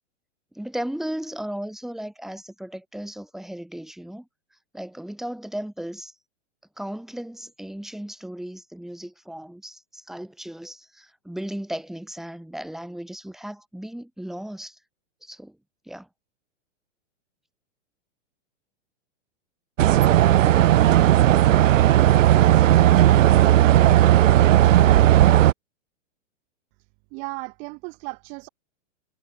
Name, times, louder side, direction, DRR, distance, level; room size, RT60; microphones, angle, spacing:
voice 1, 0.5-4.3 4.7-6.1 6.8-14.8 15.2-15.6 15.9-16.1, right 1 dB, ahead, 5.5 m, -35 dB
sound 1, 19.8-25.5, right 13 dB, 90° right, 0.9 m, -15 dB
voice 2, 27.1-28.5, right 32 dB, 20° right, 0.8 m, -35 dB
supercardioid pair, 170°, 37 cm